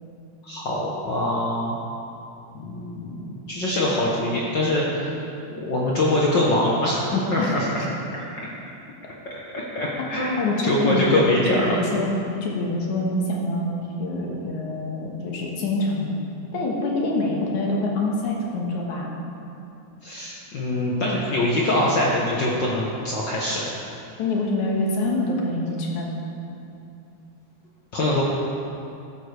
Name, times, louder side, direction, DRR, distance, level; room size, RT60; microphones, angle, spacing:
voice 1, 0.4-1.8 2.6-5.2 5.6-7.9 9.5-11.8 20.0-23.7 27.9-28.2, left 1 dB, 85° left, -4 dB, 1.0 m, -23 dB
voice 2, 7.4-7.8 10.4-12.1 12.4-16.1 16.5-19.2 24.2-26.2, left 2 dB, 70° left, -2 dB, 2.8 m, -26 dB
14.5 x 10.5 x 3.4 m, 2.7 s
omnidirectional pair, 3.7 m